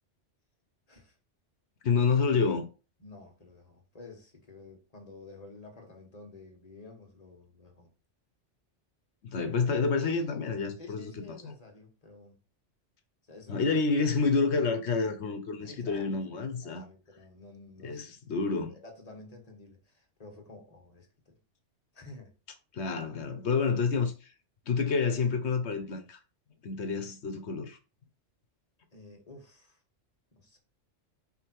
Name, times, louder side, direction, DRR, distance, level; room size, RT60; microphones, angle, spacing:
voice 1, 1.8-2.7 9.3-11.1 13.5-16.9 17.8-18.8 22.7-24.3 24.7-26.2 26.6-27.8, left 4 dB, 70° left, 1.1 m, -28 dB
voice 2, 3.0-7.9 10.8-12.4 13.2-14.2 15.6-18.3 18.7-21.4 21.9-22.3 28.9-29.8 30.3-30.6, left 2 dB, 30° left, 1.7 m, -51 dB
5.5 x 3.7 x 4.6 m
omnidirectional pair, 1.2 m